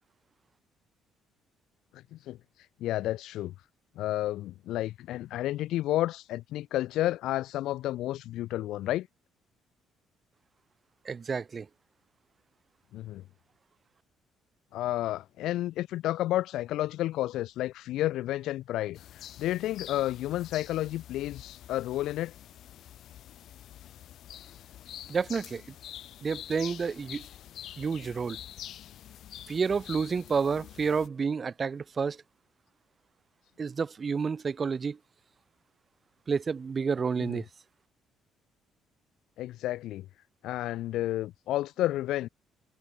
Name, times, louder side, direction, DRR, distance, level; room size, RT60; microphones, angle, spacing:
voice 1, 1.9-2.4 2.8-3.5 4.0-9.1 12.9-13.2 14.7-19.0 19.4-22.3 37.2-37.4 39.4-40.1 40.4-42.3, left 14 dB, 70° left, 0.4 m, -31 dB
voice 2, 11.1-11.7 25.1-25.6 26.2-27.2 27.8-28.4 29.5-32.2 33.6-35.0 36.3-37.5, right 5 dB, 25° right, 0.4 m, -30 dB
sound 1, 18.9-31.1, left 11 dB, 55° left, 3.4 m, -46 dB
cardioid pair, 170°, 0 cm